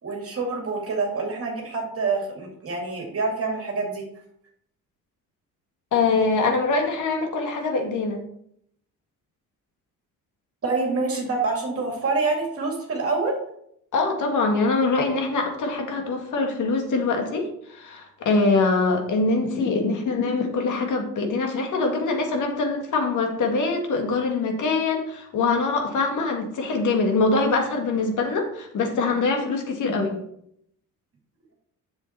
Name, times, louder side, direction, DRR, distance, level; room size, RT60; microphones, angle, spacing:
voice 1, 0.0-4.0 10.6-13.4, right 3 dB, 40° right, 1 dB, 2.2 m, -26 dB
voice 2, 5.9-8.2 13.9-30.2, left 3 dB, 60° left, 3 dB, 2.1 m, -23 dB
7.4 x 7.1 x 4.4 m, 0.71 s
cardioid pair, 95°, 34 cm